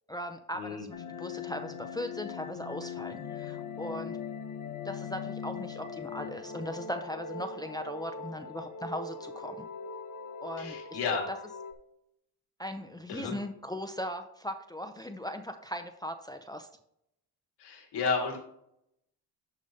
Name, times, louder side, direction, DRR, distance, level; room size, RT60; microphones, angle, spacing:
voice 1, 0.1-4.2 4.8-9.6 10.4-11.0 12.6-16.7, equal, 10° left, 6 dB, 0.5 m, -38 dB
sound 1, 0.9-11.7, left 5 dB, 50° left, 0.9 m, -40 dB
voice 2, 10.6-11.3 13.1-13.3 17.6-18.4, left 5 dB, 75° left, 1 dB, 2.0 m, -32 dB
11.5 x 4.9 x 2.8 m, 0.75 s
cardioid pair, 95°, 40 cm